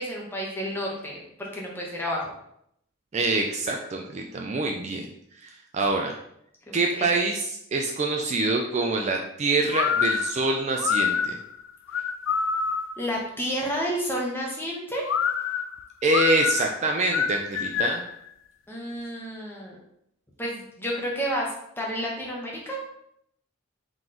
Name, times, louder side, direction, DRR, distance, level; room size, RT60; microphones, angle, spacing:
voice 1, 0.0-2.3 5.8-5.9 6.7-7.1 13.0-15.1 18.7-19.8 20.4-22.8, equal, 10° left, -2 dB, 0.9 m, -31 dB
voice 2, 3.1-5.1 5.4-6.2 6.7-11.4 16.0-18.0, right 2 dB, 35° right, 1 dB, 0.3 m, -25 dB
sound 1, 9.7-13.0 15.0-18.1, left 6 dB, 70° left, 0.3 m, -26 dB
3.8 x 3.0 x 3.8 m, 0.73 s
head